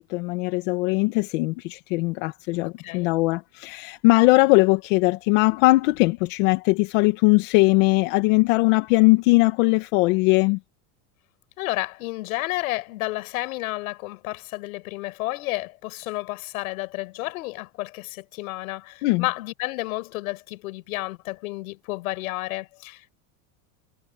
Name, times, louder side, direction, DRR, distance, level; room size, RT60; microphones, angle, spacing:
voice 1, 0.0-10.6 19.0-19.2, left 24 dB, 60° left, 1.6 m, -20 dB
voice 2, 2.6-3.1 11.6-23.1, left 20 dB, 80° left, 5.8 m, -31 dB
supercardioid pair, 160°, 42 cm